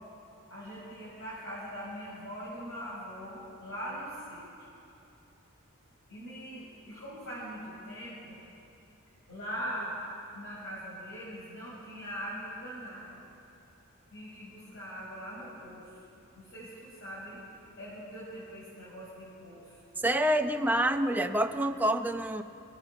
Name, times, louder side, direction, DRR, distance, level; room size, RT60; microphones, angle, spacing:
voice 1, 0.5-4.4 6.1-8.4 9.3-9.9 10.3-13.2 14.1-16.0 16.3-17.4 17.8-19.7, equal, 55° left, -8 dB, 6.5 m, -41 dB
voice 2, 20.0-22.4, right 1 dB, 10° right, 5 dB, 0.7 m, -27 dB
25.0 x 19.5 x 7.2 m, 2.8 s
head